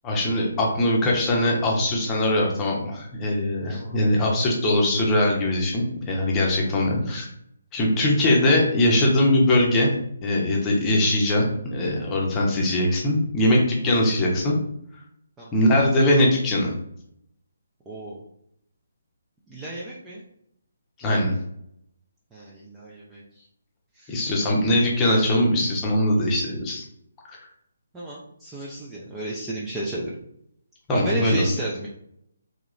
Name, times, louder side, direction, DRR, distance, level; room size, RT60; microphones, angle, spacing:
voice 1, 0.0-7.3 7.7-9.9 10.2-14.6 15.5-16.7 21.0-21.4 24.1-26.8 27.3-27.4 30.9-31.4, left 1 dB, 15° left, -2 dB, 0.9 m, -21 dB
voice 2, 17.9-18.2 19.5-20.2 22.3-23.2 24.0-24.1 27.9-30.1 30.9-31.9, right 1 dB, 10° right, -6 dB, 0.5 m, -32 dB
3.6 x 2.9 x 3.1 m, 0.73 s
figure-of-eight pair, 140°, 0 cm